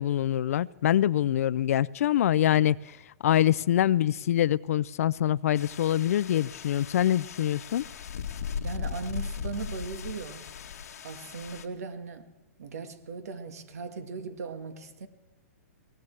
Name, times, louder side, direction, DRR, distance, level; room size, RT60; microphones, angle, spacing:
voice 1, 0.0-3.0 3.2-7.8, left 11 dB, 70° left, 0.4 m, -25 dB
sound 1, 5.6-11.7, left 7 dB, 85° left, 1.3 m, -38 dB
voice 2, 8.6-10.5 11.0-12.3 12.6-15.1, right 5 dB, 75° right, 1.7 m, -38 dB
22.0 x 18.0 x 3.3 m
hypercardioid pair, 150°, 8 cm